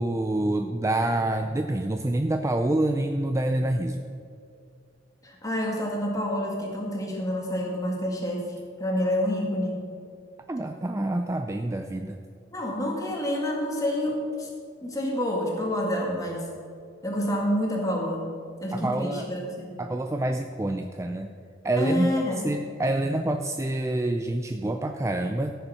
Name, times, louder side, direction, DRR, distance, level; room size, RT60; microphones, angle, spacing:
voice 1, 0.0-4.0 10.5-12.2 18.7-19.3 19.8-21.3 21.6-25.5, right 1 dB, 15° right, 6 dB, 0.4 m, -27 dB
voice 2, 5.2-8.5 8.8-9.8 12.5-14.5 14.8-16.5 17.0-18.2 18.6-19.8 21.8-22.4, left 1 dB, 20° left, -1 dB, 2.0 m, -28 dB
14.0 x 6.9 x 5.6 m, 2.4 s
head